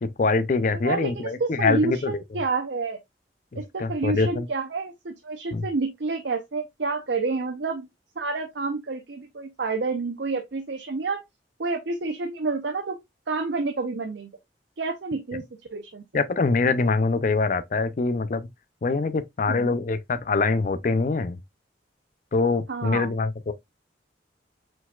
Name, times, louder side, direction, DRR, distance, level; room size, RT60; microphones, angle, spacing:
voice 1, 0.0-2.2 3.5-4.5 5.5-5.7 16.1-18.5 18.8-21.4 22.3-23.5, left 3 dB, 45° left, 0.4 m, -24 dB
voice 2, 0.8-3.0 3.6-7.9 8.2-11.2 11.6-13.0 13.3-14.3 14.8-15.4 15.7-16.2 19.5-19.8 22.7-23.1, right 3 dB, 70° right, 0.6 m, -29 dB
4.6 x 4.0 x 2.3 m
head